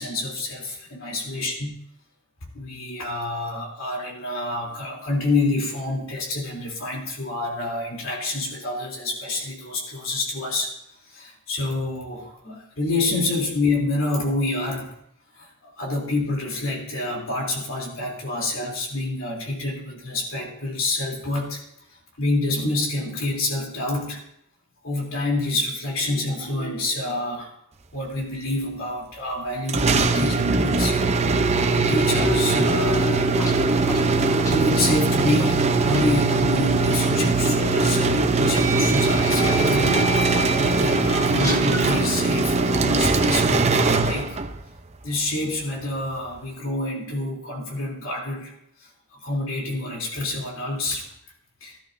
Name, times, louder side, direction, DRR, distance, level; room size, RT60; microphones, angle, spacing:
voice 1, 0.0-1.8 2.5-10.7 11.1-14.9 15.4-21.6 22.2-24.2 24.8-27.6 27.9-31.0 31.7-33.1 34.5-44.4 45.0-48.5 48.8-51.1 51.6-51.8, left 2 dB, 70° left, -1 dB, 3.3 m, -27 dB
sound 1, 29.7-44.6, right 3 dB, 35° right, 0.7 m, -21 dB
sound 2, 31.9-40.1, left 2 dB, 45° left, 5.3 m, -33 dB
sound 3, 33.0-36.0 36.3-36.5 37.6-37.7 38.5-41.9, equal, 15° left, 1.4 m, -31 dB
16.5 x 13.0 x 2.7 m, 0.75 s
head